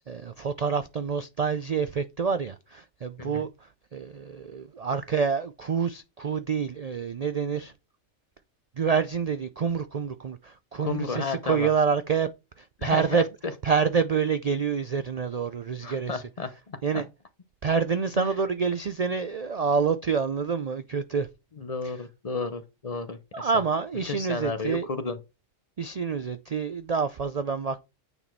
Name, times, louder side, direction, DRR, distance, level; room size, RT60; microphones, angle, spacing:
voice 1, 0.1-3.5 3.9-7.7 8.8-12.3 12.6-13.3 13.6-16.2 16.8-17.1 17.6-21.3 21.8-21.9 23.3-24.9 25.8-27.8, right 6 dB, 80° right, 0.3 m, -27 dB
voice 2, 10.8-11.7 12.8-13.2 15.8-17.0 18.2-18.3 21.6-23.5 24.0-25.2, left 3 dB, 35° left, 0.7 m, -32 dB
8.9 x 4.2 x 4.6 m
omnidirectional pair, 1.4 m